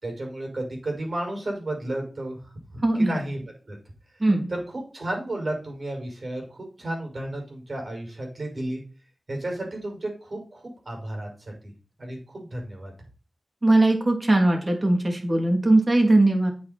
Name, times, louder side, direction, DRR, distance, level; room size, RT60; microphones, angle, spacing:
voice 1, 0.0-2.4 2.7-3.8 4.5-8.8 9.3-11.3 11.6-11.7 12.0-12.9, right 1 dB, 60° right, 1 dB, 6.4 m, -33 dB
voice 2, 2.8-3.2 4.2-4.5 13.6-16.5, right 2 dB, 40° right, 2 dB, 3.3 m, -20 dB
9.0 x 8.4 x 4.5 m, 0.36 s
wide cardioid pair, 70°, 0 cm